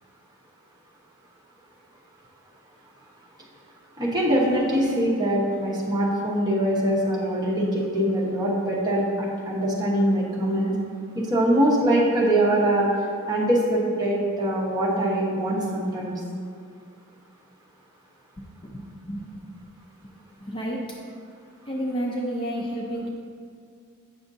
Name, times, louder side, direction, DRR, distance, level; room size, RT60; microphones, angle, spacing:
voice 1, 4.0-10.7 11.1-12.9 13.3-16.1, right 1 dB, 20° right, -6 dB, 1.1 m, -23 dB
voice 2, 18.6-19.7 20.4-20.8 21.7-23.1, equal, 25° left, -3 dB, 0.5 m, -31 dB
8.2 x 6.0 x 2.7 m, 2.3 s
head